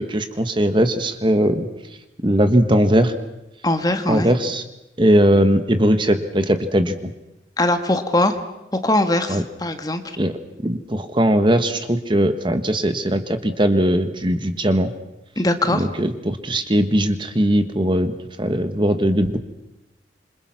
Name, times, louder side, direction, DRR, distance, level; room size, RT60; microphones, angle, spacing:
voice 1, 0.0-1.7 2.2-3.1 4.1-4.6 5.0-7.1 9.3-9.4 10.2-10.3 10.6-14.9 15.7-19.4, right 1 dB, 25° right, 9 dB, 1.4 m, -19 dB
voice 2, 3.6-4.3 7.6-8.4 8.8-10.0 15.4-15.9, left 1 dB, 20° left, 8 dB, 1.5 m, -20 dB
27.5 x 25.5 x 5.9 m, 0.94 s
head